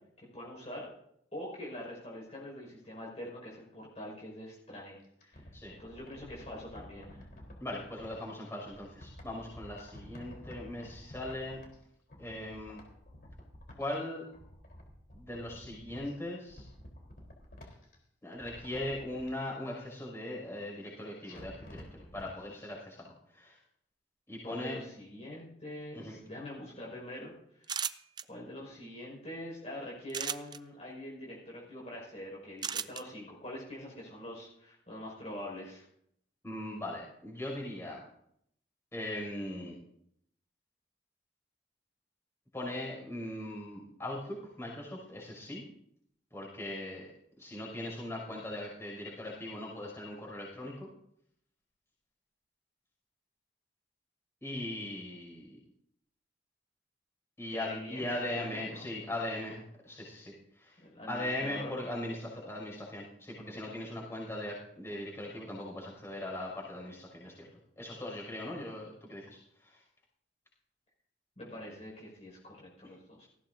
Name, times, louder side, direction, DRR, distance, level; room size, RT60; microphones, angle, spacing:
voice 1, 0.2-0.9 1.3-5.0 5.2-5.5 5.8-7.2 24.4-27.7 28.3-35.9 57.5-58.1 58.3-58.9 60.8-61.8 71.4-73.3, left 1 dB, 35° left, -3 dB, 5.5 m, -44 dB
sound 1, 5.0-8.1 8.6-11.8 12.1-13.9 14.2-16.1 16.5-18.0 18.3-19.3 21.2-22.3 22.6-22.7, left 1 dB, 55° left, 3.9 m, -51 dB
voice 2, 7.6-11.6 12.2-12.8 13.8-14.3 15.1-16.7 18.2-23.6 24.3-24.8 25.9-26.2 36.4-38.0 38.9-39.8 42.5-45.6 46.3-47.1 47.4-50.9 54.4-55.6 57.4-60.8 61.1-67.5 67.8-69.8, left 1 dB, 15° left, -3 dB, 6.2 m, -39 dB
sound 2, 27.6-28.2 30.1-30.6 32.6-33.0, right 8 dB, 25° right, 0.4 m, -34 dB
19.0 x 16.0 x 2.7 m, 0.72 s
head